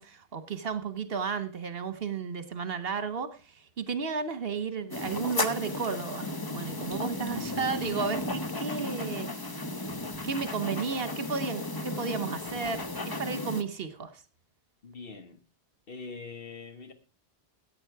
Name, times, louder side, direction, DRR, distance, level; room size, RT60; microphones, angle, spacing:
voice 1, 0.0-9.3 10.2-14.2, right 5 dB, 65° right, 1.3 m, -33 dB
sound 1, 4.9-13.6, left 2 dB, 25° left, 0.8 m, -34 dB
voice 2, 14.8-15.4 15.9-16.9, left 4 dB, 60° left, 1.6 m, -43 dB
14.0 x 8.8 x 4.7 m
omnidirectional pair, 1.1 m